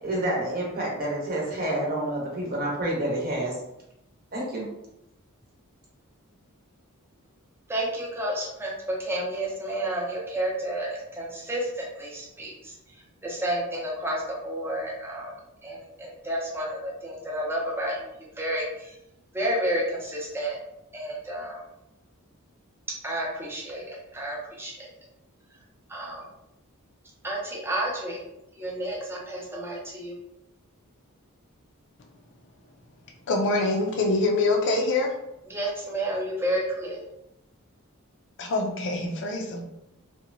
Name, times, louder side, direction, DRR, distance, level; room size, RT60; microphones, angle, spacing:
voice 1, 0.0-3.6 4.3-4.7, right 1 dB, 45° right, -3 dB, 0.8 m, -28 dB
voice 2, 7.7-12.7 13.2-15.3 15.6-18.9 19.3-20.6 20.9-21.6 23.0-24.9 25.9-26.2 27.2-28.2 28.6-30.2 35.5-37.0, right 1 dB, 10° right, -3 dB, 0.6 m, -31 dB
voice 3, 33.3-35.1 38.4-39.6, left 2 dB, 55° left, 1 dB, 0.4 m, -25 dB
2.8 x 2.1 x 2.6 m, 0.85 s
head